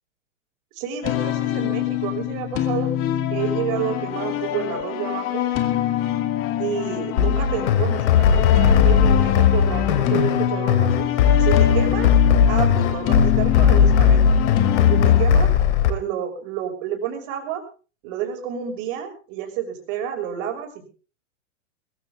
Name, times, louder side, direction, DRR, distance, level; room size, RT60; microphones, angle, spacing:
voice 1, 0.7-2.9 3.3-5.5 6.6-11.1 11.4-12.1 12.5-14.3 14.8-15.5 15.9-17.6 18.0-20.9, right 9 dB, 45° right, 4 dB, 6.1 m, -29 dB
sound 1, 1.0-15.2, left 12 dB, 35° left, 2.3 m, -25 dB
sound 2, 7.2-15.9, left 7 dB, 60° left, 2.9 m, -17 dB
21.5 x 15.0 x 3.7 m, 0.36 s
hypercardioid pair, 130°, 39 cm